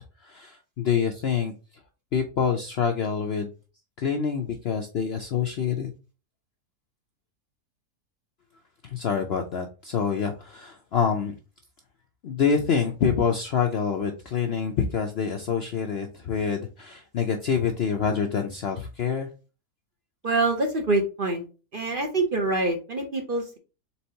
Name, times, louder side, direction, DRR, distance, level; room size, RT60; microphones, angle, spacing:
voice 1, 0.2-1.5 2.1-3.5 4.0-5.9 8.8-11.3 12.2-19.3, left 6 dB, 60° left, 3 dB, 0.7 m, -26 dB
voice 2, 20.2-21.4 21.7-23.6, right 2 dB, 45° right, 3 dB, 0.8 m, -25 dB
4.3 x 3.8 x 2.8 m, 0.33 s
omnidirectional pair, 1.6 m